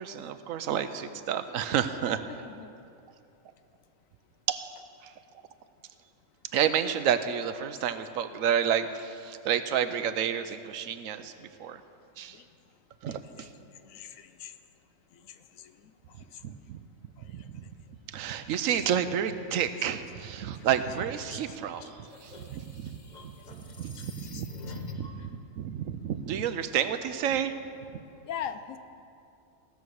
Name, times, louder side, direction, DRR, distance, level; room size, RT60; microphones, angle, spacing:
voice 1, 0.0-2.2 4.5-4.7 5.0-5.1 6.5-11.8 12.2-12.4 13.0-13.5 16.4-16.8 17.2-17.6 18.1-23.0 23.2-27.5 27.9-28.0, right 9 dB, 80° right, 11 dB, 1.0 m, -30 dB
voice 2, 13.1-14.6 15.1-15.8 16.3-16.4 17.2-17.7 21.3-21.4 21.8-21.9 24.3-24.4 28.3-28.8, left 9 dB, 80° left, 10 dB, 1.0 m, -42 dB
sound 1, 21.7-25.2, left 4 dB, 35° left, 0.9 m, -46 dB
16.5 x 6.9 x 6.3 m, 2.6 s
omnidirectional pair, 1.4 m